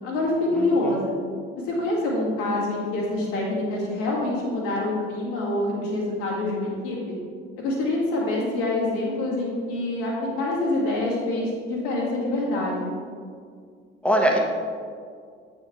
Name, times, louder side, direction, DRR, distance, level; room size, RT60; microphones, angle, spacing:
voice 1, 0.0-1.1 1.6-7.2 7.6-12.9, left 2 dB, 65° left, -5 dB, 2.0 m, -26 dB
voice 2, 0.5-1.0 14.0-14.4, right 1 dB, 5° left, 0 dB, 1.3 m, -22 dB
8.2 x 6.3 x 3.2 m, 2.1 s
figure-of-eight pair, 50°, 32 cm